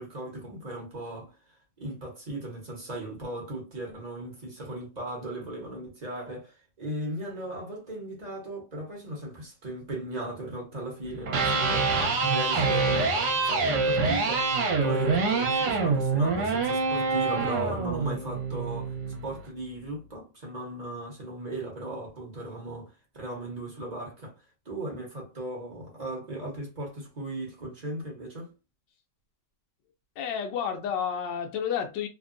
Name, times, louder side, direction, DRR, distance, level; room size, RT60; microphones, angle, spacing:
voice 1, 0.0-1.4 1.8-18.9 19.2-24.4 24.6-28.5, right 1 dB, 30° right, 0.9 m, -37 dB
Electric guitar, 11.1-19.2, right 4 dB, 70° right, 1.4 m, -26 dB
voice 2, 30.2-32.1, left 8 dB, 85° left, 1.2 m, -30 dB
3.3 x 2.2 x 2.5 m
omnidirectional pair, 1.9 m